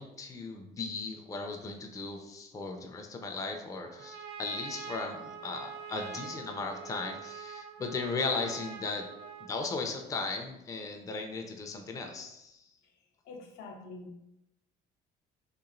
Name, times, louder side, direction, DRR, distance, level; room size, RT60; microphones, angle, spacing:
voice 1, 0.0-9.1 9.4-12.6, left 3 dB, 20° left, 3 dB, 0.3 m, -37 dB
Trumpet, 3.7-9.7, right 6 dB, 75° right, 0.4 m, -44 dB
voice 2, 13.3-14.2, left 3 dB, 85° left, 3 dB, 0.5 m, -45 dB
2.9 x 2.3 x 2.5 m, 0.86 s
cardioid pair, 110°, 17 cm